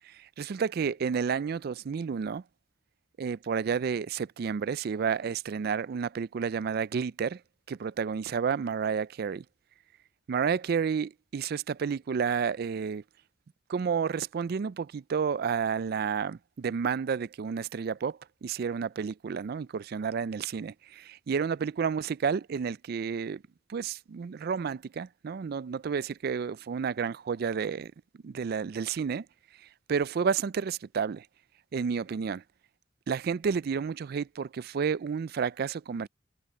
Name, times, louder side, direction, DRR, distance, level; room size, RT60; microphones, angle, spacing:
voice 1, 0.4-2.4 3.2-7.4 7.7-9.4 10.3-13.0 13.7-23.4 23.7-27.9 28.2-29.3 29.9-31.3 31.7-32.4 33.1-36.1, right 6 dB, 55° right, 0.4 m, -31 dB
head